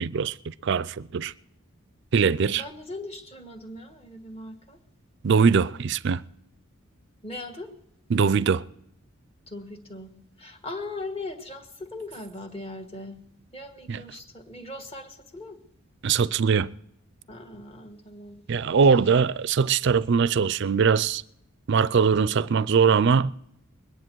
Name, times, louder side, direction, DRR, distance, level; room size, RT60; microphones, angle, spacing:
voice 1, 0.0-1.3 2.1-2.6 5.2-6.2 8.1-8.6 13.9-14.0 16.0-16.7 18.5-21.2 21.7-23.3, right 6 dB, 55° right, 0.4 m, -21 dB
voice 2, 2.5-4.8 7.2-7.7 9.5-10.1 10.4-13.2 13.5-15.6 17.3-18.4, left 2 dB, 30° left, 1.6 m, -39 dB
22.0 x 10.0 x 4.6 m
head